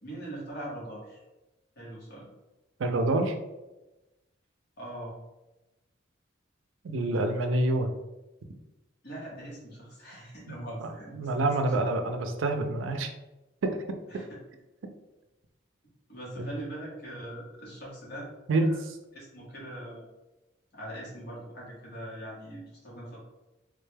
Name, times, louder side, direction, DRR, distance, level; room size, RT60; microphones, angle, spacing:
voice 1, 0.0-1.2 1.7-2.3 4.8-5.1 9.0-11.7 14.1-14.4 16.1-18.3 18.7-18.8 19.1-20.0 20.7-23.2, right 1 dB, 55° left, -5 dB, 1.3 m, -41 dB
voice 2, 2.8-3.3 6.8-7.9 10.8-13.1 13.6-13.8 16.4-16.5 18.5-18.7, right 2 dB, 85° right, 6 dB, 0.4 m, -27 dB
3.6 x 2.2 x 3.2 m, 1.0 s
head